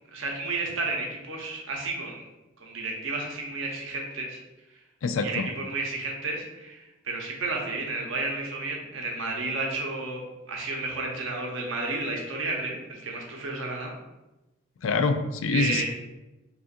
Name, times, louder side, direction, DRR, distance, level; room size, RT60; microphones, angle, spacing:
voice 1, 0.1-2.2 2.6-4.4 5.2-10.2 10.5-13.9 15.5-15.8, right 3 dB, 70° right, 0 dB, 0.8 m, -32 dB
voice 2, 5.0-5.5 14.8-15.8, left 4 dB, 75° left, 8 dB, 0.3 m, -25 dB
5.1 x 2.5 x 2.5 m, 1.0 s
head